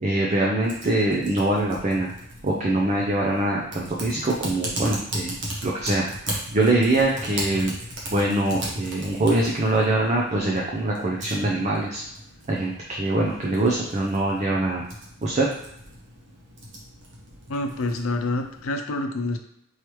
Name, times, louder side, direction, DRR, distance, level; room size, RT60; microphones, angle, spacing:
voice 1, 0.0-2.1 2.4-5.3 5.6-7.7 8.1-12.0 12.5-14.8 15.2-15.5, right 2 dB, 35° right, -2 dB, 0.5 m, -23 dB
Typing, 0.6-18.7, right 1 dB, 60° right, 1.1 m, -37 dB
voice 2, 17.5-19.4, left 2 dB, 80° left, 5 dB, 0.6 m, -27 dB
4.6 x 3.2 x 3.0 m, 0.77 s
head